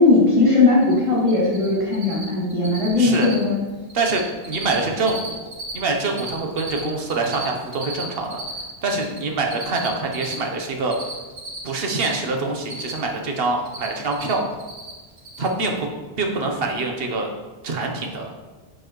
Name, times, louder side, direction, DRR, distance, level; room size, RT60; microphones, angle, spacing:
voice 1, 0.0-3.6, left 3 dB, 30° right, -7 dB, 2.0 m, -18 dB
Cricket, 0.8-1.7 1.9-2.2 2.5-2.9 3.1-3.4 3.7-4.2 4.4-5.7 6.0-9.2 9.5-12.1 12.4-13.2 13.4-14.3 14.6-14.9 15.2-15.5, right 2 dB, 80° right, 1.7 m, -34 dB
voice 2, 3.0-3.3 3.9-5.4 5.7-8.4 8.8-11.0 11.6-14.4 15.4-15.7 16.2-17.3 17.6-18.3, right 3 dB, 65° right, 2 dB, 1.2 m, -25 dB
9.6 x 4.5 x 3.1 m, 1.2 s
omnidirectional pair, 1.1 m